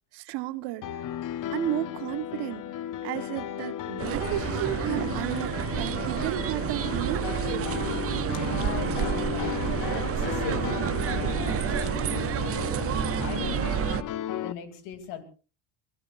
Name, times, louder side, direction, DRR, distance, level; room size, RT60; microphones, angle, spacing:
voice 1, 0.1-1.1 1.5-2.7 3.0-7.3, right 16 dB, 60° right, 12 dB, 1.4 m, -33 dB
Piano, 0.8-14.5, left 11 dB, 45° left, 0.9 m, -34 dB
sound 1, 4.0-14.0, right 11 dB, 30° right, 0.7 m, -29 dB
voice 2, 8.3-10.8 11.1-14.0 14.4-15.2, left 8 dB, 75° left, 8 dB, 3.1 m, -40 dB
22.5 x 19.5 x 2.5 m, 0.36 s
supercardioid pair, 100°, 46 cm